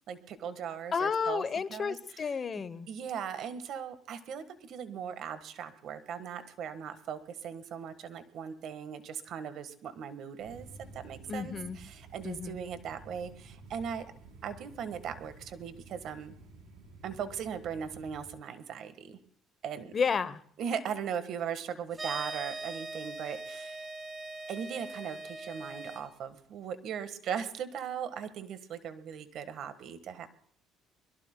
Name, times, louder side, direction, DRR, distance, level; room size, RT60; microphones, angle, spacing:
voice 1, 0.1-1.4 1.7-2.0 2.5-10.7 10.9-14.1 14.4-16.3 17.0-19.2 19.6-19.9 20.6-23.8 24.5-30.3, right 7 dB, 60° right, 1.4 m, -39 dB
voice 2, 0.9-2.9 11.3-11.8 12.2-12.6 19.9-20.4, left 6 dB, 35° left, 0.8 m, -31 dB
sound 1, 10.4-18.3, right 3 dB, 85° right, 3.6 m, -52 dB
sound 2, 21.9-26.0, right 3 dB, 25° right, 3.1 m, -41 dB
24.5 x 22.0 x 2.2 m
cardioid pair, 115°, 0 cm